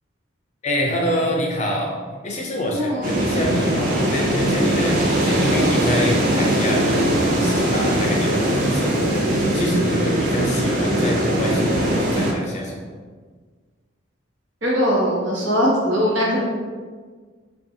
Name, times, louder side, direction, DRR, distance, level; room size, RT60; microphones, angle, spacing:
voice 1, 0.6-2.0 2.2-7.1 7.4-12.8, equal, 35° left, 0 dB, 0.5 m, -26 dB
voice 2, 2.7-3.2 9.4-9.5 14.6-16.4, equal, 70° right, -4 dB, 1.0 m, -21 dB
sound 1, 3.0-12.3, right 1 dB, 45° right, 0.7 m, -20 dB
5.3 x 2.3 x 2.7 m, 1.5 s
head